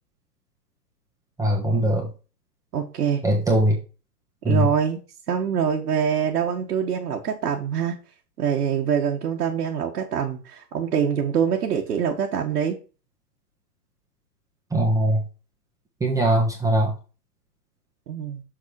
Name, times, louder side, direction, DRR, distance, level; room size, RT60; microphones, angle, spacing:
voice 1, 1.4-2.1 3.2-3.8 4.4-4.7 14.7-15.2 16.0-16.9, right 1 dB, 5° right, -1 dB, 1.3 m, -21 dB
voice 2, 2.7-3.2 4.4-5.0 5.3-8.0 8.4-12.8 18.1-18.4, right 8 dB, 75° right, 0 dB, 1.5 m, -24 dB
6.8 x 5.0 x 4.7 m, 0.33 s
hypercardioid pair, 130°, 47 cm